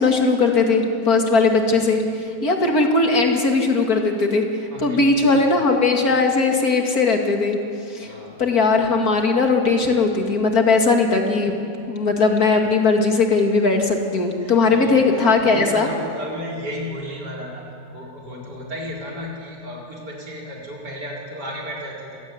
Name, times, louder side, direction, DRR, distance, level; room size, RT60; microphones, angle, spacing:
voice 1, 0.0-2.0 2.4-4.4 4.8-7.6 7.9-8.1 8.4-11.6 11.9-15.9, left 3 dB, 65° left, 3 dB, 2.8 m, -18 dB
voice 2, 4.7-5.6 8.0-8.4 14.4-17.7 17.9-22.2, equal, 80° right, -3 dB, 5.2 m, -34 dB
26.0 x 16.0 x 9.7 m, 2.5 s
omnidirectional pair, 1.8 m